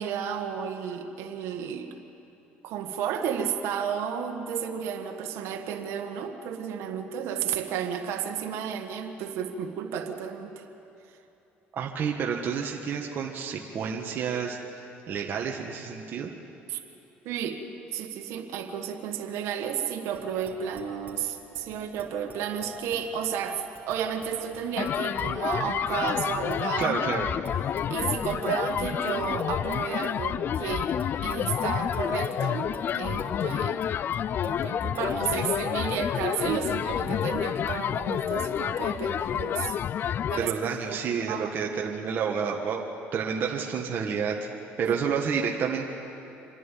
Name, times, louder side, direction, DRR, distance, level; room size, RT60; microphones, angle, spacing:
voice 1, 0.0-1.9 2.6-10.6 16.7-16.8 17.2-17.6 17.9-27.1 27.9-30.9 31.2-32.7 32.9-33.9 34.4-39.8 40.3-40.5 40.9-41.0 41.3-41.5 44.9-45.0, right 8 dB, 75° right, 4 dB, 1.7 m, -32 dB
voice 2, 11.7-14.6 15.1-16.3 26.8-27.3 40.3-42.8 43.1-44.3 44.8-45.9, right 6 dB, 50° right, 0 dB, 1.6 m, -29 dB
sound 1, 20.1-35.1, equal, 30° right, 3.2 m, -48 dB
sound 2, 24.8-40.5, left 9 dB, 50° left, 0.4 m, -29 dB
27.0 x 11.0 x 9.2 m, 2.9 s
cardioid pair, 95°, 5 cm